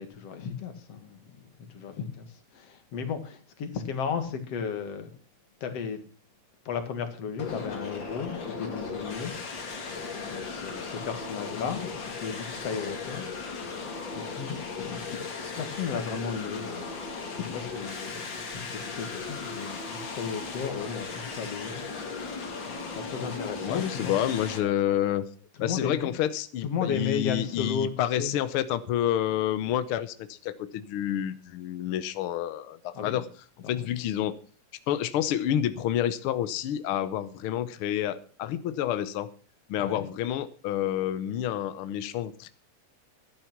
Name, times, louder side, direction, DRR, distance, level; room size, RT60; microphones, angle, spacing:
voice 1, 0.0-5.1 5.6-6.0 6.7-9.3 10.3-15.2 15.6-16.9 17.3-21.9 22.7-24.1 25.6-26.1 26.6-28.3 32.9-33.3 33.6-33.9 39.8-40.1, left 6 dB, 55° left, 2.7 m, -35 dB
sound 1, 7.4-24.6, left 4 dB, 40° left, 2.4 m, -37 dB
voice 2, 23.6-25.2 25.6-33.2 33.7-34.3 34.9-39.3 39.7-42.5, left 11 dB, 80° left, 1.2 m, -29 dB
11.5 x 11.0 x 6.0 m
omnidirectional pair, 3.5 m